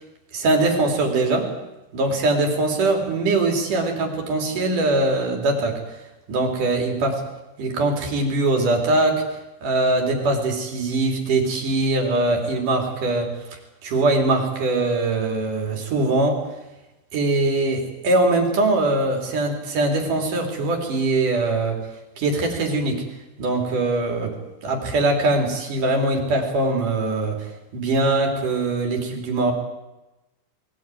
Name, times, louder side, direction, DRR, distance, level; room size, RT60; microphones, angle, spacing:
voice 1, 0.3-1.5 1.9-5.8 6.3-7.2 7.6-9.2 9.6-13.3 13.8-16.4 17.1-21.8 22.2-23.0 23.4-29.5, right 2 dB, 45° right, 2 dB, 4.2 m, -22 dB
21.5 x 17.5 x 9.1 m, 1.0 s
omnidirectional pair, 5.5 m